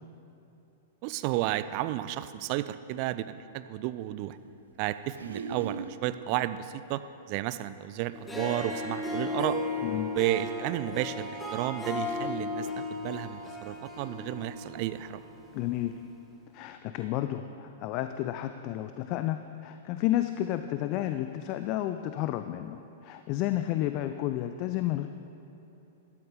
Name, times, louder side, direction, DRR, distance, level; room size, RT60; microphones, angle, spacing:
voice 1, 1.0-4.4 4.8-9.6 10.1-15.2, right 14 dB, 45° right, 13 dB, 0.4 m, -32 dB
sound 1, 5.0-6.0 8.0-8.1 9.2-9.3 10.8-10.9 11.5-11.6 11.9-12.4, right 5 dB, 75° right, 0.8 m, -40 dB
Harp, 8.1-15.6, left 3 dB, 10° left, 1.4 m, -35 dB
voice 2, 15.5-16.0 16.5-25.1, left 13 dB, 40° left, 9 dB, 0.4 m, -31 dB
13.0 x 12.0 x 3.7 m, 3.0 s
figure-of-eight pair, 105°, 0 cm